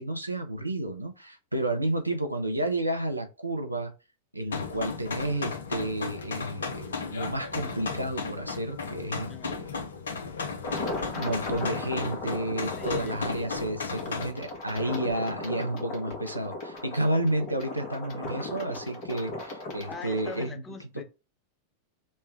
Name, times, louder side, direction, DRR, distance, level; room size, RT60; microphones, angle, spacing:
voice 1, 0.0-3.9 4.3-9.7 10.8-20.6, right 1 dB, 90° right, 0.5 m, -31 dB
sound 1, 4.5-14.3, left 5 dB, 70° left, 0.5 m, -35 dB
voice 2, 9.3-9.7 12.7-13.7 19.9-21.0, left 4 dB, 20° left, 0.6 m, -43 dB
sound 2, 10.6-20.5, left 2 dB, 45° left, 1.0 m, -37 dB
3.2 x 2.2 x 3.1 m
figure-of-eight pair, 90°, 0 cm